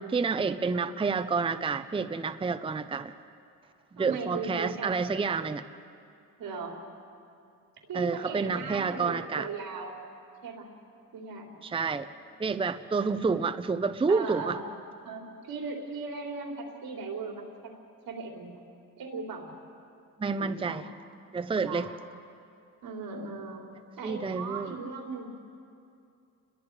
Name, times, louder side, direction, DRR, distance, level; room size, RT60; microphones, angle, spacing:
voice 1, 0.0-3.1 4.0-5.6 7.9-9.5 11.6-12.1 12.4-14.6 20.2-20.8 21.3-21.9 24.0-24.8, right 4 dB, 15° right, 10 dB, 0.6 m, -29 dB
voice 2, 4.0-5.1 6.4-6.8 7.9-10.0 10.4-10.7 11.1-11.6 14.1-14.8 15.0-17.7 18.1-18.6 19.0-19.5 20.4-20.8 21.6-21.9 22.8-23.6 24.0-25.4, right 4 dB, 90° right, 0 dB, 3.7 m, -38 dB
29.5 x 21.5 x 4.8 m, 2.5 s
cardioid pair, 130°, 34 cm